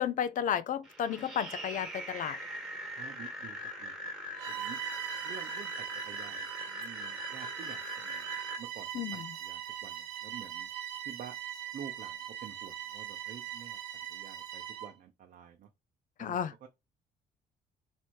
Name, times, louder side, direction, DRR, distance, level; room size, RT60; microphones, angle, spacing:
voice 1, 0.0-2.4 8.9-9.3 16.2-16.5, left 9 dB, 55° left, 0.4 m, -32 dB
sound 1, 0.8-8.6, equal, 5° right, 1.4 m, -41 dB
voice 2, 3.0-3.9 4.5-4.8 5.2-6.4 6.7-8.2 8.6-8.9 9.1-10.7 11.0-11.3 11.7-13.8 14.1-15.7 16.2-16.7, right 8 dB, 60° right, 0.7 m, -49 dB
Bowed string instrument, 4.3-15.0, right 11 dB, 85° right, 1.2 m, -41 dB
3.3 x 3.0 x 4.3 m
cardioid pair, 105°, 17 cm